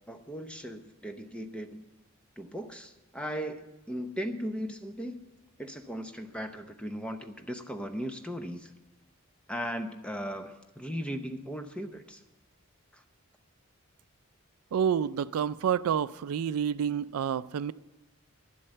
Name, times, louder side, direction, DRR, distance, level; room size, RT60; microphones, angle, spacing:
voice 1, 0.1-1.8 2.4-5.2 5.6-8.7 9.5-12.2 12.9-13.0, equal, 5° left, 0.7 m, -37 dB
voice 2, 14.7-17.7, right 8 dB, 80° right, 0.3 m, -28 dB
11.5 x 7.7 x 7.8 m
head